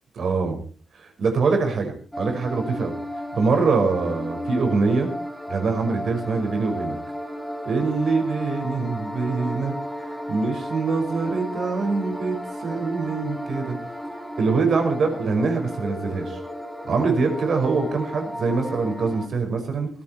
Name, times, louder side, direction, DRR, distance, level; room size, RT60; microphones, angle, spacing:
voice 1, 0.1-0.6 0.9-2.9 3.3-5.1 5.5-7.0 7.7-9.8 10.3-13.8 14.4-16.4 16.8-19.9, right 4 dB, 60° right, 5 dB, 5.4 m, -24 dB
sound 1, 2.1-19.3, equal, 5° left, 2.8 m, -34 dB
19.5 x 14.5 x 4.4 m, 0.41 s
wide cardioid pair, 150°, 0 cm